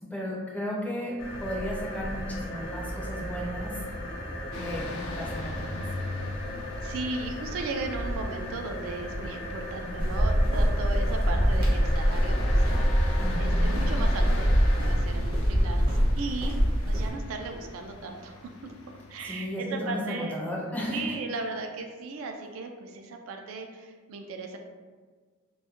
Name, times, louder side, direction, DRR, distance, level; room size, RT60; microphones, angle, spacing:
voice 1, 0.0-3.8 4.5-5.9 9.7-10.0 11.3-11.6 13.2-13.8 19.2-21.1, left 1 dB, 5° left, -4 dB, 0.4 m, -35 dB
sound 1, 1.2-15.2, equal, 60° left, 0.7 m, -36 dB
sound 2, 4.5-19.3, left 2 dB, 90° left, 0.4 m, -44 dB
voice 2, 6.8-16.6 16.9-18.7 19.1-20.6 20.9-24.6, right 3 dB, 80° right, 4 dB, 0.3 m, -37 dB
sound 3, 10.0-17.1, equal, 50° right, 0.8 m, -24 dB
2.2 x 2.1 x 2.8 m, 1.5 s
head